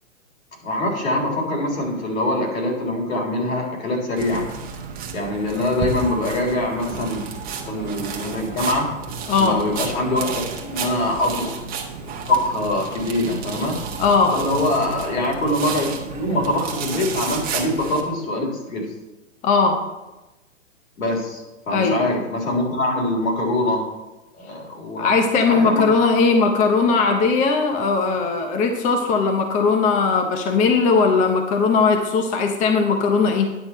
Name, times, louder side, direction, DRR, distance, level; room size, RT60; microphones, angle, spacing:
voice 1, 0.6-4.5 5.1-7.3 7.6-8.9 9.4-11.5 12.3-13.8 14.3-15.9 16.1-18.9 21.0-23.9 24.4-25.1 25.5-26.1, left 1 dB, 80° left, -2 dB, 3.8 m, -23 dB
sound 1, 4.2-18.0, right 5 dB, 20° right, 1.1 m, -32 dB
voice 2, 9.3-9.6 14.0-14.3 19.4-19.8 21.7-22.1 25.0-33.5, left 4 dB, 20° left, 4 dB, 0.7 m, -19 dB
10.0 x 7.1 x 4.2 m, 1.0 s
hypercardioid pair, 130°, 39 cm